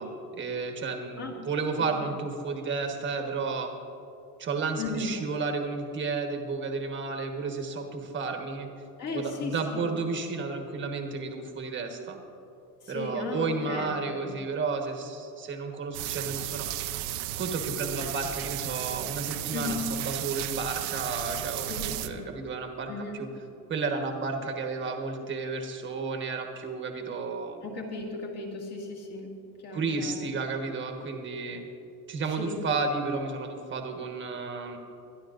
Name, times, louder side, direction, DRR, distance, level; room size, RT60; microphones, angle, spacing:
voice 1, 0.0-3.7 4.4-8.7 9.1-12.2 12.9-16.7 17.4-21.7 22.0-23.3 23.7-27.6 29.7-31.6 32.1-34.8, right 4 dB, 25° right, 3 dB, 1.3 m, -32 dB
voice 2, 1.2-1.5 1.8-2.2 4.8-5.2 9.0-9.9 12.8-14.4 19.5-19.9 21.7-22.3 22.9-23.3 27.6-29.3 29.6-30.3 32.4-32.6, left 3 dB, 30° left, 0 dB, 2.0 m, -36 dB
sound 1, 15.9-22.1, right 14 dB, 65° right, 0.8 m, -34 dB
23.5 x 11.5 x 2.6 m, 2.8 s
supercardioid pair, 150°, 47 cm